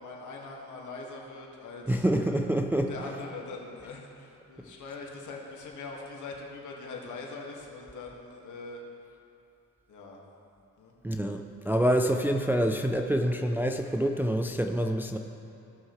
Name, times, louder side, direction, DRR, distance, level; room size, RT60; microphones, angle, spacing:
voice 1, 0.0-2.4 2.9-8.8 9.9-10.2 10.8-11.0, left 3 dB, 60° left, -1 dB, 1.9 m, -42 dB
voice 2, 1.9-2.9 11.0-15.2, right 1 dB, 5° right, 4 dB, 0.4 m, -26 dB
17.0 x 6.3 x 3.2 m, 2.7 s
cardioid pair, 85°, 33 cm